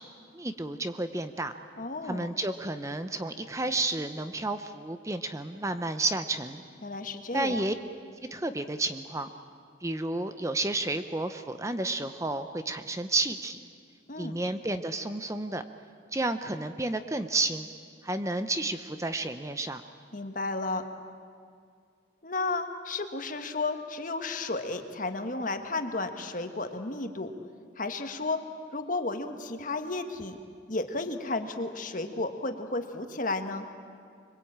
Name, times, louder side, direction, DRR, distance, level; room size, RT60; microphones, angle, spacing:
voice 1, 0.3-1.5 2.0-6.6 7.3-7.7 8.3-9.3 9.8-13.6 14.2-15.6 16.1-17.7 18.0-19.8, right 2 dB, 15° right, 9 dB, 0.7 m, -31 dB
voice 2, 1.8-2.3 6.8-7.6 14.1-14.4 20.1-20.9 22.2-27.3 27.8-28.4 28.7-30.4 30.7-33.6, left 2 dB, 45° left, 7 dB, 1.5 m, -33 dB
25.0 x 23.0 x 8.8 m, 2.2 s
head